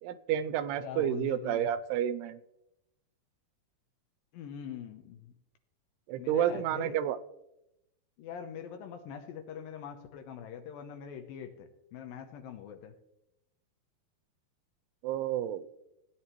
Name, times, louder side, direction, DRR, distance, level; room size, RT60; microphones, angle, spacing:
voice 1, 0.0-2.4 6.1-7.2 15.0-15.7, right 10 dB, 90° right, 12 dB, 2.7 m, -30 dB
voice 2, 0.8-1.7 4.3-5.3 6.2-7.0 8.2-12.9, left 8 dB, 75° left, 6 dB, 2.3 m, -43 dB
17.0 x 9.9 x 3.0 m, 0.85 s
omnidirectional pair, 4.6 m